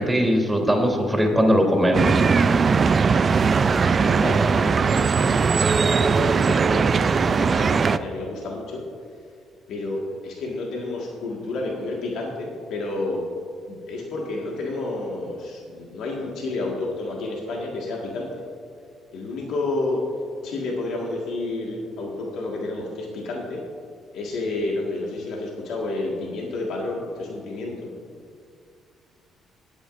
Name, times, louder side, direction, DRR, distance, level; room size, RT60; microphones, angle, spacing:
voice 1, 0.0-2.2, equal, 15° right, 1 dB, 3.2 m, -20 dB
sound 1, 1.9-8.0, right 5 dB, 45° right, 0.4 m, -19 dB
voice 2, 2.4-3.7 3.9-8.8 9.7-13.2 13.7-18.4 19.1-20.0 20.4-23.6 24.1-27.9, left 2 dB, 75° left, -2 dB, 1.7 m, -30 dB
21.5 x 8.9 x 2.6 m, 2.2 s
supercardioid pair, 65°, 0 cm